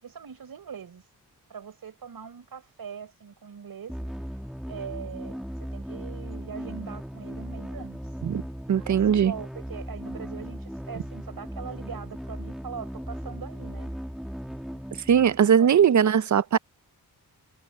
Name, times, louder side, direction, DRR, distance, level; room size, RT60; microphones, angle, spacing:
voice 1, 0.0-1.0 1.5-3.9 4.7-8.0 8.9-13.9 15.4-16.2, right 7 dB, 65° right, 4.5 m, -41 dB
sound 1, 3.9-15.8, equal, ahead, 1.7 m, -37 dB
voice 2, 8.7-9.3 15.1-16.6, right 8 dB, 50° right, 0.7 m, -20 dB
cardioid pair, 90°, 37 cm